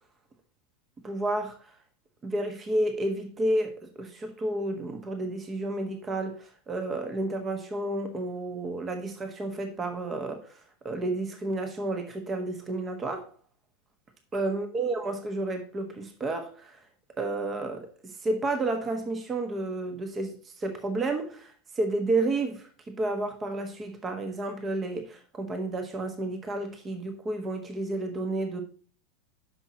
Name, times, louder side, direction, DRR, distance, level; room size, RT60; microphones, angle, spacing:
voice 1, 1.0-1.6 2.2-10.6 10.8-13.3 14.3-16.8 17.2-28.6, right 2 dB, 25° right, 1.4 m, -31 dB
9.7 x 6.1 x 2.9 m
hypercardioid pair, 95°, 0 cm